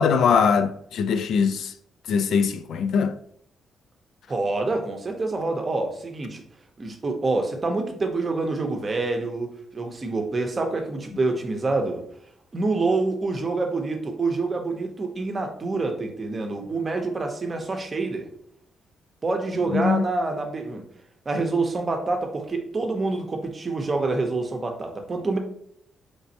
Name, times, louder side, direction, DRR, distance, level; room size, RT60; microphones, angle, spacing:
voice 1, 0.0-1.7 2.1-3.2 19.7-20.0, left 6 dB, 75° left, 0.3 m, -21 dB
voice 2, 4.3-6.4 6.8-12.0 12.5-18.3 19.2-20.8 21.3-25.4, right 3 dB, 30° right, 0.7 m, -26 dB
4.2 x 3.3 x 2.7 m
cardioid pair, 125°, 0 cm